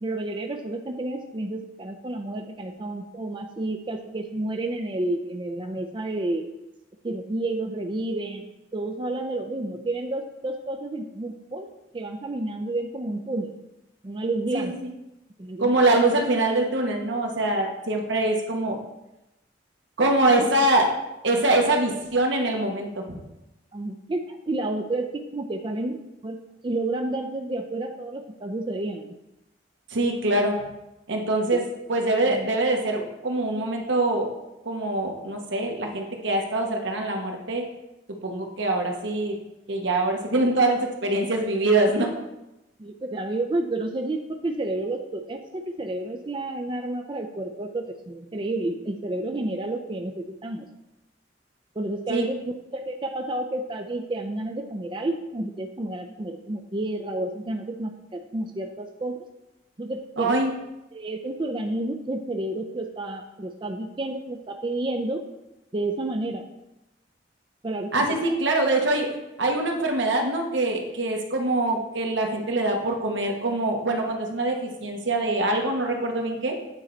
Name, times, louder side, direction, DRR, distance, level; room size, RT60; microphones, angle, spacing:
voice 1, 0.0-6.4 7.0-8.5 8.7-13.5 14.0-14.7 15.4-15.7 20.2-20.5 23.7-26.0 26.2-26.4 26.6-29.1 31.5-31.7 32.3-32.5 42.8-50.7 51.8-52.4 52.7-59.2 59.8-60.4 60.9-65.2 65.7-66.4 67.6-68.2, right 2 dB, 25° right, 4 dB, 0.4 m, -30 dB
voice 2, 15.6-18.8 20.0-20.9 21.2-23.2 29.9-30.6 31.1-31.6 31.9-34.3 34.6-37.6 38.2-39.3 39.7-42.1 52.1-52.2 60.2-60.5 67.9-69.1 69.4-76.5, right 2 dB, 80° right, 2 dB, 1.2 m, -24 dB
8.9 x 4.0 x 4.3 m, 0.94 s
head